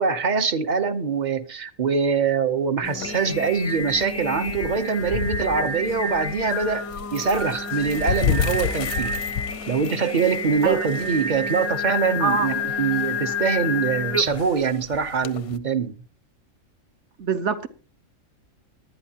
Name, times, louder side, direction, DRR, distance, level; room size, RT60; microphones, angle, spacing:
voice 1, 0.0-9.1 9.7-15.9, right 5 dB, 40° right, 0.8 m, -24 dB
sound 1, 2.8-15.6, left 8 dB, 85° left, 1.2 m, -33 dB
Singing, 2.8-14.6, left 3 dB, 20° left, 0.4 m, -30 dB
voice 2, 12.2-12.5 17.2-17.7, right 6 dB, 60° right, 1.2 m, -24 dB
19.5 x 11.0 x 2.9 m
omnidirectional pair, 1.5 m